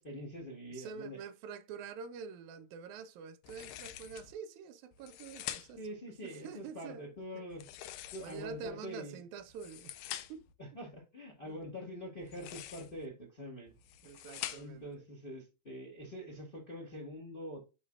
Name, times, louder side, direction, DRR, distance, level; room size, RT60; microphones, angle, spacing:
voice 1, 0.0-1.2 5.8-7.6 8.1-9.2 10.6-13.7 14.5-17.6, equal, 25° left, 1.1 m, -45 dB
voice 2, 0.7-5.8 6.2-7.4 8.2-10.0 10.3-10.5 11.4-11.6 14.0-15.0, right 6 dB, 80° right, 1.9 m, -46 dB
sound 1, 3.4-4.3 4.9-5.9 7.5-8.6 9.4-10.5 12.2-13.1 13.7-14.9, left 13 dB, 85° left, 2.2 m, -45 dB
10.0 x 4.0 x 2.4 m
omnidirectional pair, 3.6 m